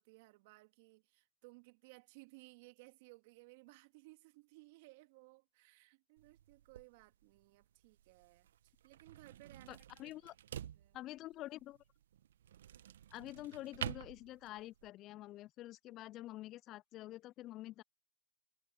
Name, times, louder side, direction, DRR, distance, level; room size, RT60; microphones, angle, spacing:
voice 1, 0.0-10.3 10.7-11.0, right 25 dB, 45° right, 2.1 m, -60 dB
sound 1, 6.2-14.9, right 10 dB, 65° right, 1.1 m, -50 dB
voice 2, 9.7-10.3 10.9-11.8 13.1-17.8, left 15 dB, 30° left, 0.3 m, -48 dB
hypercardioid pair, 135°, 0 cm